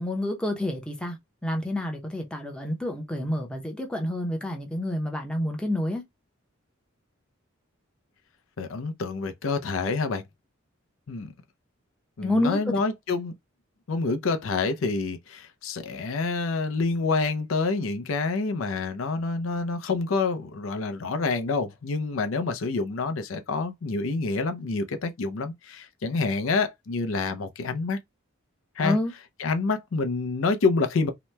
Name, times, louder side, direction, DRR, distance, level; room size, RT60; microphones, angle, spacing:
voice 1, 0.0-6.0 12.2-12.8 28.8-29.1, left 1 dB, 5° left, 0.6 m, -28 dB
voice 2, 8.6-10.2 11.1-11.3 12.2-13.3 13.9-28.0 28.8-29.0 29.4-31.1, left 3 dB, 75° left, 0.5 m, -27 dB
2.8 x 2.1 x 3.2 m
head